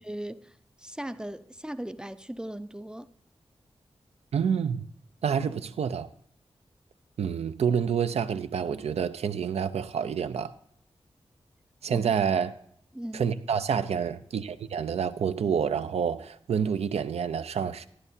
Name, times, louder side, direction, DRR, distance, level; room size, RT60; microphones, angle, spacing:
voice 1, 0.0-3.1 11.9-12.1 12.9-13.3, right 1 dB, 10° right, 0.4 m, -38 dB
voice 2, 4.3-4.9 5.2-6.1 7.2-10.5 11.8-12.5 13.1-17.9, right 7 dB, 90° right, 0.5 m, -28 dB
12.5 x 9.8 x 2.7 m
wide cardioid pair, 90°, 10 cm